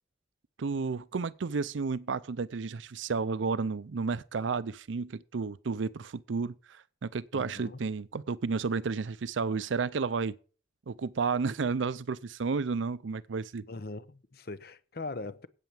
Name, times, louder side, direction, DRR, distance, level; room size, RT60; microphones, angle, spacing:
voice 1, 0.6-10.3 10.9-13.6, right 4 dB, 80° right, 0.5 m, -32 dB
voice 2, 7.3-7.8 13.6-15.5, left 3 dB, 55° left, 0.8 m, -40 dB
9.1 x 8.4 x 7.1 m
head